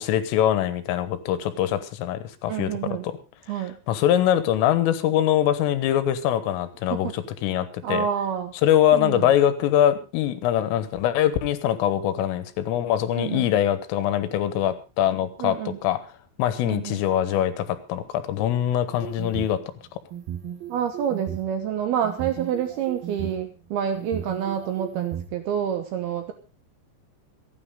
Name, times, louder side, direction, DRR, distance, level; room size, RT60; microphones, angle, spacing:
voice 1, 0.0-2.7 3.0-3.2 3.6-8.1 8.6-16.1 16.4-19.6, left 11 dB, 85° left, 13 dB, 3.8 m, -23 dB
voice 2, 2.5-3.1 3.5-3.8 6.9-7.1 7.8-8.5 8.9-9.3 13.2-13.5 15.4-15.8 16.6-17.0 20.7-26.3, right 8 dB, 75° right, 7 dB, 2.4 m, -28 dB
sound 1, 18.9-19.6 20.1-21.5 22.0-23.3 24.0-25.3, right 10 dB, 55° right, 3.4 m, -35 dB
27.0 x 9.7 x 3.7 m, 0.31 s
omnidirectional pair, 5.8 m